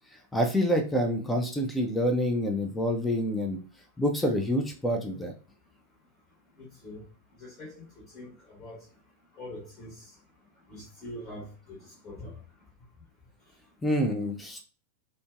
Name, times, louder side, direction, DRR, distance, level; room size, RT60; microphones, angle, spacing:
voice 1, 0.1-3.6 4.0-5.3 13.8-14.6, equal, 10° left, 3 dB, 0.4 m, -27 dB
voice 2, 6.6-7.0 7.4-8.8 9.4-10.1 10.7-12.4, left 1 dB, 30° left, -4 dB, 1.1 m, -44 dB
2.5 x 2.1 x 2.3 m, 0.38 s
figure-of-eight pair, 90°, 0 cm